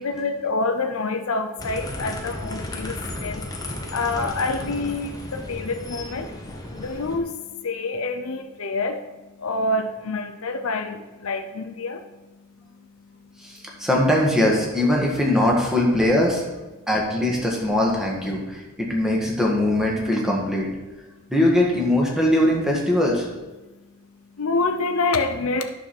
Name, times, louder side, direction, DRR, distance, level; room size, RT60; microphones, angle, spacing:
voice 1, 0.0-13.9 16.8-16.9 18.3-18.8 19.2-19.4 21.1-21.3 23.6-25.7, left 3 dB, 85° left, 7 dB, 0.7 m, -28 dB
sound 1, 1.6-7.2, left 1 dB, 15° left, 1.0 m, -34 dB
voice 2, 13.8-16.4 16.9-20.7 21.3-23.2, left 1 dB, 5° right, -2 dB, 1.5 m, -21 dB
9.7 x 6.3 x 4.2 m, 1.1 s
head